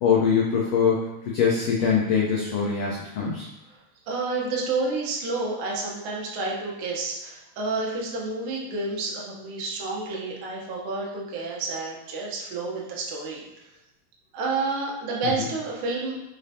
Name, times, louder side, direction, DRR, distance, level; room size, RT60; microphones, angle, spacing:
voice 1, 0.0-3.5 15.4-15.5, left 6 dB, 90° left, -4 dB, 1.3 m, -23 dB
voice 2, 4.1-13.4 14.3-16.2, right 3 dB, 85° right, -3 dB, 1.1 m, -30 dB
5.0 x 3.3 x 2.7 m, 0.92 s
omnidirectional pair, 3.6 m